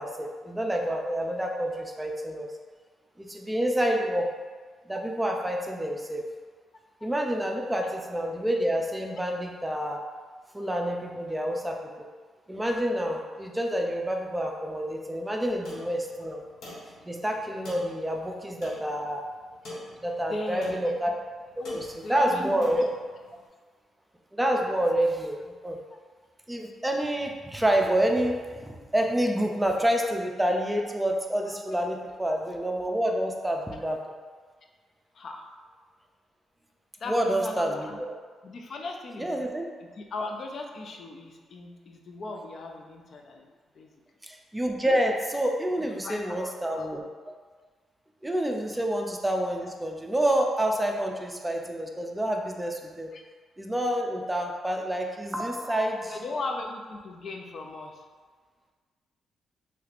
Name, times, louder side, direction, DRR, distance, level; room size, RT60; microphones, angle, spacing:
voice 1, 0.0-2.5 3.2-4.3 4.9-6.2 7.0-10.0 10.5-12.1 12.5-16.4 17.0-19.2 20.0-21.1 21.6-22.9 24.3-25.8 26.5-34.0 37.1-37.9 39.2-39.7 44.2-47.0 47.3-47.4 48.2-53.1 53.6-56.2, right 1 dB, 10° right, 1 dB, 0.4 m, -28 dB
sound 1, 15.6-23.4, left 1 dB, 80° left, 0.9 m, -45 dB
voice 2, 20.3-20.8 21.6-22.6 25.9-26.0 31.4-31.6 35.2-35.4 37.0-38.0 38.4-39.3 39.8-43.5 43.8-43.9 45.8-46.9 48.7-48.8 53.1-53.2 56.1-58.0, left 2 dB, 55° left, 2 dB, 0.4 m, -38 dB
3.2 x 3.2 x 2.4 m, 1.5 s
cardioid pair, 85°, 0 cm